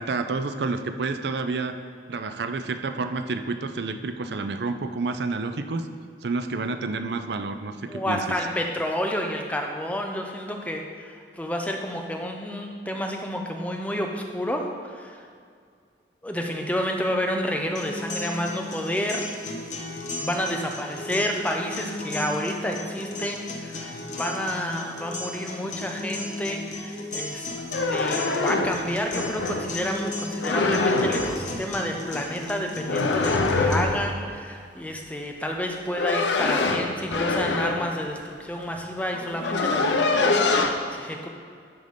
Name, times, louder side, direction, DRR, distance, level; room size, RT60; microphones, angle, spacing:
voice 1, 0.0-1.8 2.1-5.9 6.2-8.2, right 3 dB, 65° right, 8 dB, 0.5 m, -29 dB
voice 2, 7.9-15.3 16.2-19.3 20.2-27.5 27.9-41.3, equal, 10° left, 2 dB, 0.6 m, -30 dB
sound 1, 17.7-33.7, left 2 dB, 45° left, 1.0 m, -35 dB
sound 2, 27.6-29.7 30.4-31.4 32.9-34.1 35.6-37.9 38.8-38.9 39.1-40.7, left 3 dB, 85° left, 0.7 m, -24 dB
11.5 x 4.0 x 5.2 m, 2.2 s
head